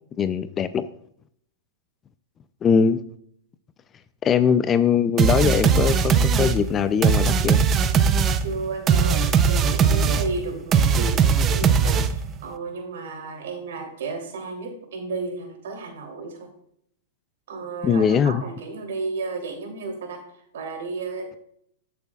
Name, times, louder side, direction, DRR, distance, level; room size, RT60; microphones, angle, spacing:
voice 1, 0.2-0.8 2.6-3.0 4.2-7.6 17.8-18.4, left 7 dB, 20° left, 13 dB, 0.4 m, -21 dB
sound 1, 5.2-12.4, right 6 dB, 25° right, 0.6 m, -20 dB
voice 2, 8.4-11.2 11.5-16.5 17.5-21.4, right 3 dB, 75° right, 2 dB, 3.1 m, -33 dB
14.0 x 6.9 x 2.4 m, 0.69 s
hypercardioid pair, 140°, 0 cm